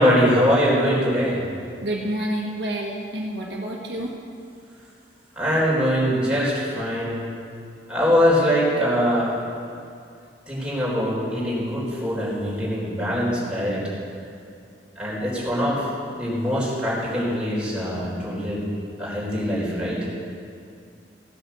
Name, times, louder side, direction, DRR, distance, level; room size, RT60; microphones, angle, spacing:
voice 1, 0.0-1.4 5.4-7.2 7.9-9.3 10.5-13.8 15.0-15.9 16.2-18.7 19.0-20.0, equal, 5° right, -7 dB, 4.1 m, -22 dB
voice 2, 1.8-4.1, right 1 dB, 70° right, -1 dB, 1.6 m, -28 dB
15.5 x 7.7 x 7.0 m, 2.4 s
head